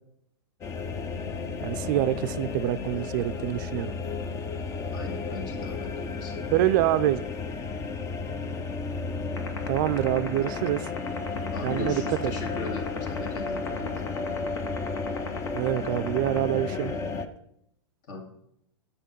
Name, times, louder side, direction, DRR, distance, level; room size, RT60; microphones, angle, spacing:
sound 1, 0.6-17.3, left 4 dB, 20° left, 0.6 m, -33 dB
voice 1, 1.6-3.9 6.5-7.2 9.7-10.9 11.6-12.0 15.5-16.9, right 14 dB, 45° right, 13 dB, 0.4 m, -26 dB
voice 2, 4.9-6.6 11.5-13.9 18.1-18.2, left 3 dB, 50° left, 3 dB, 2.0 m, -37 dB
sound 2, 9.4-16.9, left 6 dB, 75° left, 1.4 m, -35 dB
6.5 x 5.6 x 5.2 m, 0.74 s
hypercardioid pair, 125°, 14 cm